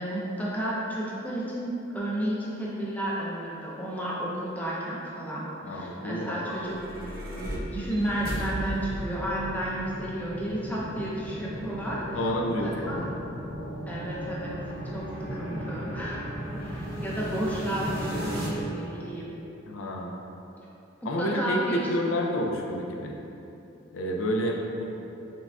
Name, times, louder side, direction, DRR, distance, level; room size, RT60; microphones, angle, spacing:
voice 1, 0.0-7.1 7.4-12.2 12.6-13.0 13.9-19.3 21.2-22.1, right 1 dB, 10° left, -6 dB, 0.5 m, -32 dB
voice 2, 5.6-7.1 12.1-13.1 15.3-15.7 19.7-20.1 21.1-23.2 23.9-24.9, equal, 70° left, 0 dB, 0.4 m, -30 dB
sound 1, 6.4-18.5, equal, 45° right, 0.7 m, -36 dB
4.8 x 3.4 x 2.3 m, 3.0 s
head